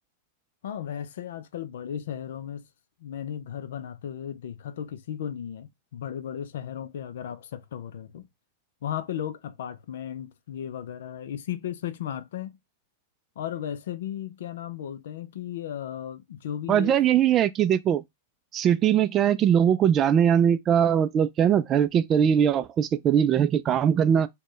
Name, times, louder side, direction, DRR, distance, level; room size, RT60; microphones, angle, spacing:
voice 1, 0.6-2.7 3.0-8.3 8.8-12.6 13.4-17.0, left 10 dB, 75° left, 0.4 m, -35 dB
voice 2, 16.7-18.0 18.5-24.3, right 9 dB, 30° right, 0.3 m, -21 dB
4.1 x 2.2 x 3.0 m
hypercardioid pair, 120°, 0 cm